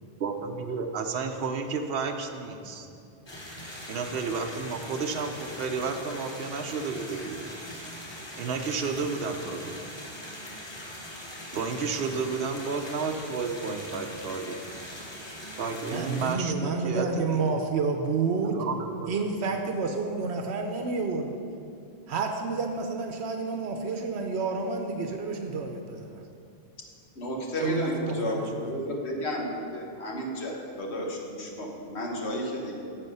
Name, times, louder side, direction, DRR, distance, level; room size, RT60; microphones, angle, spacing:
voice 1, 0.2-2.9 3.9-7.5 8.4-9.8 11.5-14.6 15.6-17.5 18.5-19.1, right 4 dB, 65° right, 5 dB, 1.0 m, -32 dB
Bath Tub Running Water, 3.3-16.4, left 1 dB, 25° left, 1.2 m, -41 dB
voice 2, 15.9-18.6 19.1-21.3 22.1-26.2 27.6-28.7, right 4 dB, 85° right, 4 dB, 1.0 m, -29 dB
voice 3, 27.2-32.8, left 1 dB, 80° left, 0 dB, 1.6 m, -32 dB
10.0 x 7.3 x 5.5 m, 2.5 s
omnidirectional pair, 1.1 m